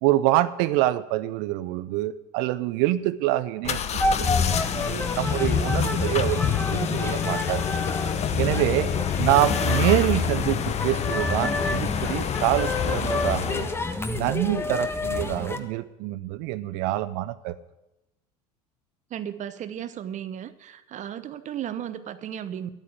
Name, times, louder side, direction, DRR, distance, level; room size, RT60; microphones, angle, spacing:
voice 1, 0.0-7.6 8.4-8.9 9.2-13.7 14.1-17.6, right 15 dB, 55° right, 15 dB, 0.7 m, -26 dB
sound 1, 3.6-13.8, left 8 dB, 35° left, 1.0 m, -27 dB
sound 2, 4.0-15.6, left 2 dB, 10° left, 1.4 m, -30 dB
voice 2, 19.1-22.7, right 10 dB, 40° right, 13 dB, 1.0 m, -35 dB
12.5 x 8.7 x 8.5 m, 0.92 s
hypercardioid pair, 75°, 20 cm